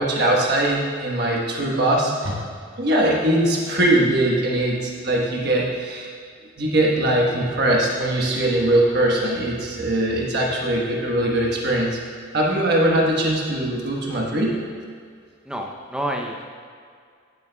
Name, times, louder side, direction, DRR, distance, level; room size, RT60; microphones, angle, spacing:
voice 1, 0.0-2.4 2.8-6.1 6.6-12.0 12.3-14.5, right 1 dB, 50° right, -2 dB, 1.3 m, -21 dB
voice 2, 15.5-16.4, right 1 dB, 5° right, 0 dB, 0.6 m, -28 dB
10.5 x 9.6 x 2.3 m, 2.1 s
head